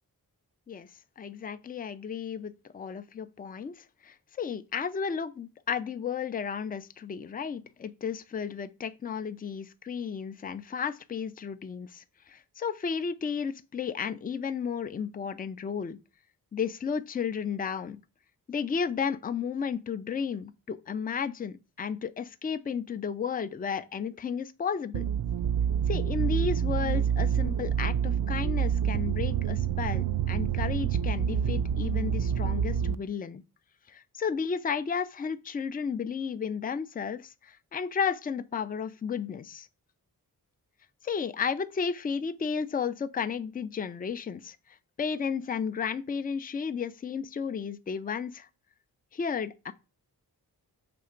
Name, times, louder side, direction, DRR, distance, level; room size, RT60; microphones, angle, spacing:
voice 1, 1.2-16.0 16.5-18.0 18.5-25.0 25.9-33.4 33.9-39.7 41.0-44.6 45.0-48.5 49.1-49.7, left 6 dB, 25° left, 0.4 m, -33 dB
sound 1, 24.9-33.0, right 8 dB, 60° right, 0.5 m, -27 dB
6.8 x 3.1 x 5.0 m
wide cardioid pair, 145°, 38 cm